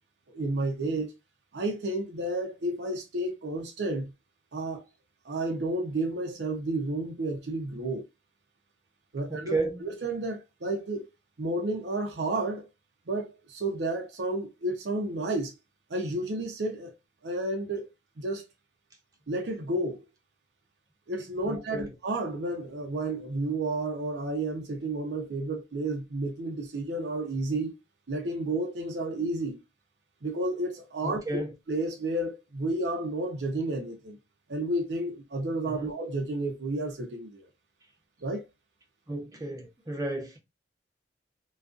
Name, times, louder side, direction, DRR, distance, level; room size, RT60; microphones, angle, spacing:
voice 1, 0.3-1.1 1.5-4.1 4.5-4.8 5.2-8.0 9.1-11.1 11.4-12.7 13.1-15.5 15.9-16.9 17.2-17.9 18.2-18.4 19.3-20.0 21.1-27.7 28.1-29.6 30.2-31.4 31.7-34.2 34.5-37.4 38.2-38.4, right 2 dB, 70° right, 0.6 m, -31 dB
voice 2, 9.3-9.9 21.5-21.8 31.0-31.5 35.6-35.9 39.1-40.4, right 2 dB, 20° right, 0.8 m, -32 dB
2.4 x 2.3 x 2.3 m
head